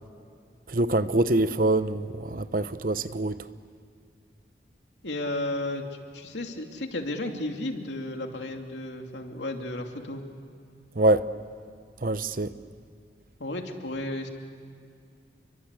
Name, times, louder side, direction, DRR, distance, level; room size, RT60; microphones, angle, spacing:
voice 1, 0.7-3.4 11.0-11.3 12.0-12.5, right 2 dB, 50° right, 0.9 m, -24 dB
voice 2, 5.0-10.2 13.4-14.3, left 1 dB, 80° left, 2.7 m, -33 dB
29.0 x 24.0 x 8.3 m
head